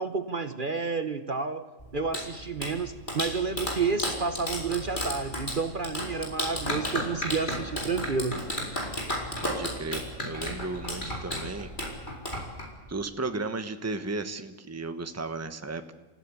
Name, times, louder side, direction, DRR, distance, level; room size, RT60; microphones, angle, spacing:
voice 1, 0.0-1.6 1.9-8.4, right 4 dB, 45° right, 9 dB, 1.2 m, -30 dB
Clapping, 1.8-12.9, left 1 dB, 40° left, 4.9 m, -33 dB
voice 2, 9.4-11.7 12.9-15.9, right 3 dB, 15° right, 9 dB, 1.2 m, -34 dB
27.5 x 15.5 x 9.7 m, 1.3 s
omnidirectional pair, 1.3 m